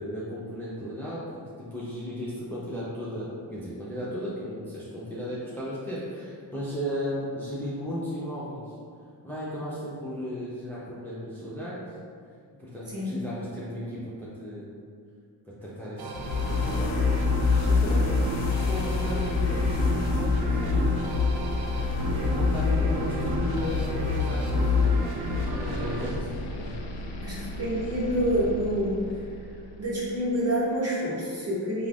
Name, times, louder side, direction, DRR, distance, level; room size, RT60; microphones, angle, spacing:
voice 1, 0.0-8.7 9.2-11.8 12.6-14.8 15.6-17.2 17.7-18.1 18.7-21.6 22.2-24.7 25.6-26.8, equal, 5° left, -8 dB, 0.6 m, -35 dB
sound 1, 16.0-27.2, right 2 dB, 50° right, 0.5 m, -34 dB
sound 2, 16.1-30.0, left 4 dB, 75° left, 0.5 m, -27 dB
voice 2, 27.2-29.0 29.8-31.9, equal, 30° right, -6 dB, 1.0 m, -27 dB
3.2 x 2.0 x 2.5 m, 2.1 s
supercardioid pair, 45°, 48 cm